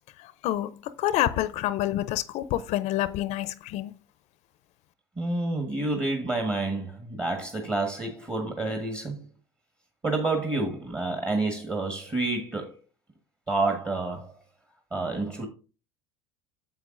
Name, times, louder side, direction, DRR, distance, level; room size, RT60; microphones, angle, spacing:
voice 1, 1.0-3.9, left 13 dB, 60° left, 0.5 m, -27 dB
voice 2, 5.2-9.3 10.0-12.7 13.5-14.3 14.9-15.5, right 2 dB, 25° right, 1.4 m, -29 dB
9.5 x 7.0 x 2.5 m
supercardioid pair, 95°, 13 cm